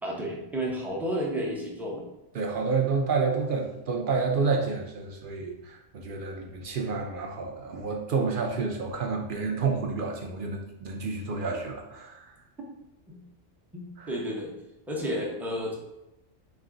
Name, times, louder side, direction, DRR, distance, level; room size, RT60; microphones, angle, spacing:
voice 1, 0.0-2.0 13.1-13.2 13.7-14.6 14.9-15.7, equal, ahead, -3 dB, 0.5 m, -31 dB
voice 2, 2.3-12.3 14.0-14.1, right 4 dB, 60° right, 2 dB, 0.5 m, -29 dB
3.6 x 3.2 x 3.8 m, 0.91 s
omnidirectional pair, 1.4 m